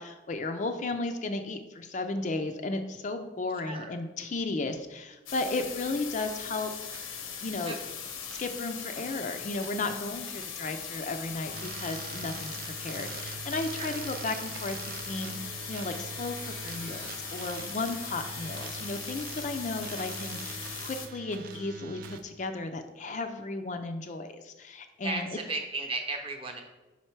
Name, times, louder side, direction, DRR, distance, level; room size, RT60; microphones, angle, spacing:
voice 1, 0.0-6.7 7.4-7.8 8.2-25.4, left 3 dB, 35° left, 7 dB, 0.4 m, -34 dB
sound 1, 5.3-21.1, left 7 dB, 90° left, 0.8 m, -40 dB
sound 2, 6.2-7.3 7.6-8.0 8.3-8.6 8.9-9.3 9.6-9.9 10.3-10.5 10.9-12.0 12.3-12.8 13.0-13.3 13.7-14.1 14.5-15.5 15.9-16.8 17.1-18.2 18.6-19.0 19.3-21.0 21.3-22.3, right 5 dB, 75° right, 0.7 m, -55 dB
sound 3, 11.5-22.2, right 6 dB, 45° right, 0.3 m, -42 dB
voice 2, 25.0-26.6, right 3 dB, 25° right, 3 dB, 0.8 m, -35 dB
5.6 x 4.4 x 4.5 m, 1.1 s
head